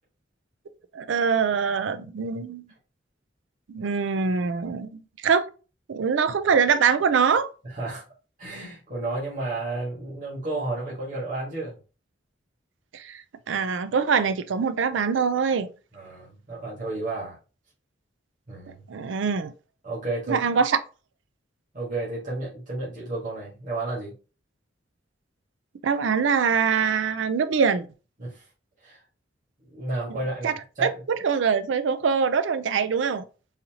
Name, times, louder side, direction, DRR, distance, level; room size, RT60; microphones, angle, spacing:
voice 1, 0.9-2.6 3.7-5.5 5.9-7.5 12.9-13.2 13.5-15.7 18.9-19.5 20.3-20.8 25.8-27.9 30.4-30.5 30.8-33.2, right 6 dB, 90° right, 0.4 m, -23 dB
voice 2, 7.6-8.0 8.4-11.8 15.9-17.4 18.5-18.9 19.8-20.5 21.7-24.1 28.2-28.4 28.8-29.0 29.6-31.0, right 2 dB, 45° right, 1.6 m, -32 dB
4.0 x 2.8 x 2.9 m
head